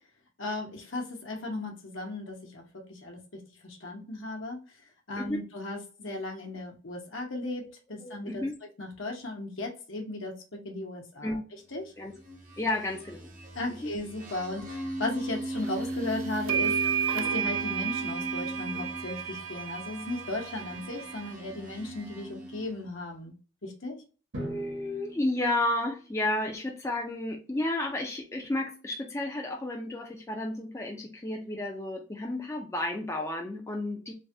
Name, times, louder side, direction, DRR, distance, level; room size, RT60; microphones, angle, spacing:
voice 1, 0.4-2.6 2.9-4.6 5.1-7.6 7.9-8.4 8.8-11.4 11.7-11.8 13.6-16.7 17.1-23.3 23.6-24.0, left 2 dB, 70° left, 1 dB, 0.9 m, -36 dB
voice 2, 8.0-8.6 11.2-11.4 12.0-12.1 12.6-13.3 13.7-13.9 24.4-34.1, left 1 dB, 15° left, 1 dB, 0.4 m, -32 dB
sound 1, 12.0-22.9, right 1 dB, 40° right, 0.8 m, -39 dB
sound 2, 15.9-16.0 16.5-21.3, right 8 dB, 85° right, 0.4 m, -32 dB
Drum, 24.3-26.3, equal, 65° right, 1.1 m, -42 dB
3.2 x 2.2 x 2.7 m, 0.36 s
head